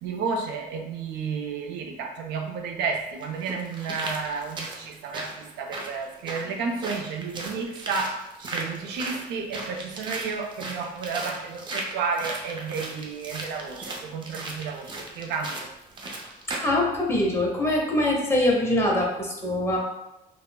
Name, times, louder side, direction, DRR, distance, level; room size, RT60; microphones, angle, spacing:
voice 1, 0.0-15.7, right 5 dB, 85° right, 3 dB, 0.4 m, -32 dB
sound 1, 2.4-2.5 3.2-16.8 17.2-17.3, right 2 dB, 30° right, 0.5 m, -37 dB
voice 2, 16.5-19.8, left 1 dB, 15° left, -2 dB, 0.7 m, -23 dB
3.5 x 2.0 x 2.2 m, 0.89 s
cardioid pair, 110°, 17 cm